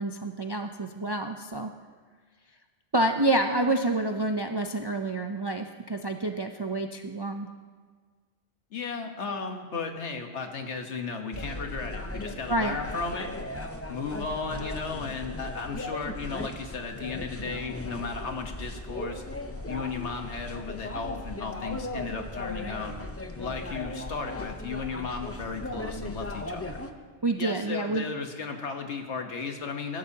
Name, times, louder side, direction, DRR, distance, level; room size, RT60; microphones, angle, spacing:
voice 1, 0.0-1.7 2.9-7.5 12.5-12.8 27.2-28.0, right 2 dB, 40° right, 5 dB, 0.4 m, -28 dB
voice 2, 8.7-13.3 13.9-19.2 19.7-22.9 23.4-26.8 27.4-30.0, left 4 dB, 70° left, 4 dB, 1.5 m, -35 dB
sound 1, 11.3-26.9, left 2 dB, 15° left, 0.5 m, -37 dB
22.0 x 12.0 x 2.8 m, 1.5 s
omnidirectional pair, 1.2 m